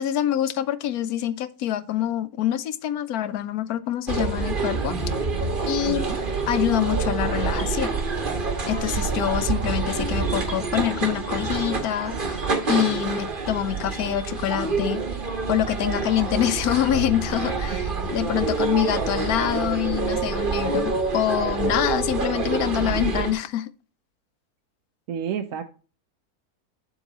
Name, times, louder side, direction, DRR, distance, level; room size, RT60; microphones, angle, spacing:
voice 1, 0.0-5.0 5.7-6.1 6.5-7.9 8.7-15.0 15.5-23.7, left 11 dB, 80° left, 1.1 m, -25 dB
sound 1, 4.1-23.3, right 4 dB, 35° right, 1.4 m, -27 dB
voice 2, 5.9-6.2 25.1-25.6, right 8 dB, 65° right, 1.0 m, -30 dB
7.7 x 7.2 x 2.9 m
omnidirectional pair, 1.6 m